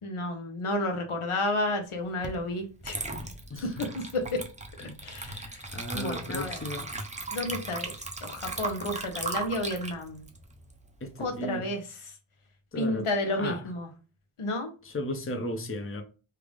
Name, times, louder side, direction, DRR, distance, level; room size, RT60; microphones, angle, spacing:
voice 1, 0.0-3.1 3.8-4.4 5.0-5.6 5.9-6.6 7.3-10.3 11.2-11.8 12.8-13.9 14.4-14.7, left 1 dB, 85° left, 0.9 m, -31 dB
Water / Liquid, 2.2-2.4 2.8-11.4, right 3 dB, 15° right, 0.6 m, -37 dB
voice 2, 3.5-3.9 4.8-5.0 5.7-6.9 11.0-11.7 12.7-13.1 13.4-13.6 14.8-16.0, left 1 dB, 25° left, 0.7 m, -35 dB
3.4 x 2.5 x 3.3 m
wide cardioid pair, 75°, 49 cm